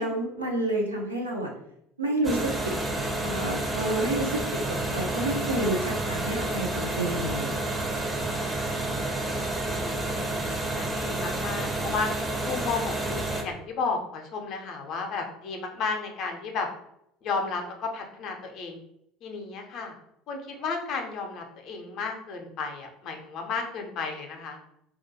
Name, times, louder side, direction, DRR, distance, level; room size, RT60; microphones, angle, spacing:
voice 1, 0.0-1.5 2.0-7.8, right 1 dB, 85° right, -1 dB, 0.5 m, -30 dB
sound 1, 2.2-13.4, right 2 dB, 15° right, 0.5 m, -30 dB
voice 2, 8.7-9.4 9.7-12.1 12.4-16.7 17.2-18.8 19.2-19.9 20.3-24.6, left 4 dB, 45° left, 3 dB, 0.5 m, -33 dB
2.3 x 2.1 x 2.8 m, 0.76 s
figure-of-eight pair, 65°, 0 cm